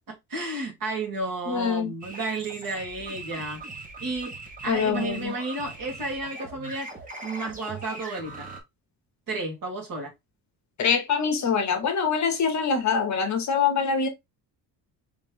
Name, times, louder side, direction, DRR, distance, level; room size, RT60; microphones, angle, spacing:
voice 1, 0.1-3.6 4.0-4.3 4.6-6.9 7.2-8.5 9.3-10.1, right 2 dB, 55° right, 1.9 m, -32 dB
voice 2, 1.5-1.9 4.7-5.3 10.8-14.1, left 6 dB, 45° left, 0.8 m, -24 dB
sound 1, 2.0-8.6, right 3 dB, 20° right, 1.0 m, -40 dB
3.4 x 3.0 x 3.4 m
cardioid pair, 150°, 40 cm